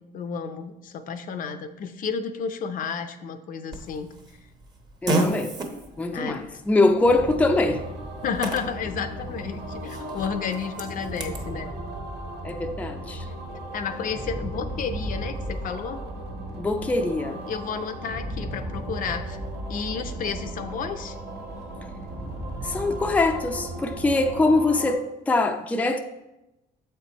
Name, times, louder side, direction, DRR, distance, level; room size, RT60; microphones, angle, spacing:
voice 1, 0.0-4.1 6.1-6.4 8.2-11.7 13.7-16.0 17.5-19.4 19.7-21.2, left 6 dB, 55° left, 8 dB, 0.6 m, -32 dB
Fart, 3.7-11.5, right 1 dB, 25° right, 0.9 m, -34 dB
voice 2, 5.0-5.5 6.0-7.8 12.4-13.3 16.6-17.4 22.6-26.0, left 2 dB, 10° left, 4 dB, 0.5 m, -23 dB
sound 1, 5.7-23.6, right 1 dB, 45° right, 1.2 m, -39 dB
sound 2, 7.0-24.9, right 1 dB, 70° right, 1.5 m, -37 dB
7.1 x 4.5 x 4.1 m, 0.95 s
cardioid pair, 110°, 17 cm